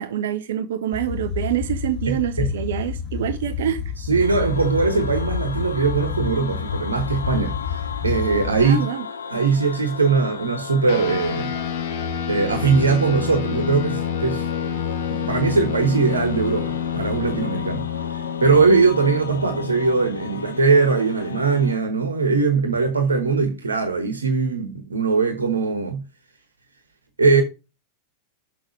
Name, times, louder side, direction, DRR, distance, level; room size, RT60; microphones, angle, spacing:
voice 1, 0.0-3.8 4.2-4.3 8.6-9.0, right 10 dB, 60° right, 0.6 m, -26 dB
sound 1, 0.9-8.7, left 6 dB, 35° left, 2.8 m, -29 dB
voice 2, 2.1-2.5 4.0-8.9 9.3-11.5 12.3-14.5 15.1-26.0 27.2-27.4, right 4 dB, 75° right, 1.2 m, -21 dB
sound 2, 4.2-21.8, left 6 dB, 70° left, 0.8 m, -35 dB
sound 3, 10.9-20.6, left 9 dB, 50° left, 1.3 m, -29 dB
6.5 x 6.4 x 6.3 m
figure-of-eight pair, 90°, 0 cm